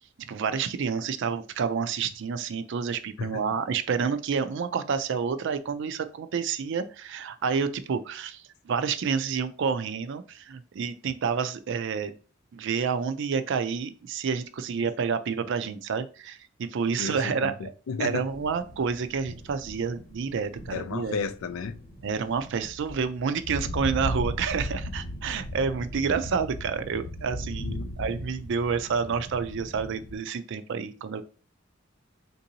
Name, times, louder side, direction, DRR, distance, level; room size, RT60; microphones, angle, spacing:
voice 1, 0.2-12.1 12.5-17.7 18.0-21.2 22.0-31.2, right 6 dB, 60° right, 0.4 m, -29 dB
voice 2, 17.0-18.3 20.7-21.8 27.6-27.9, left 5 dB, 90° left, 0.4 m, -33 dB
sound 1, 18.3-30.2, left 1 dB, 40° left, 0.9 m, -38 dB
3.6 x 2.6 x 2.7 m
head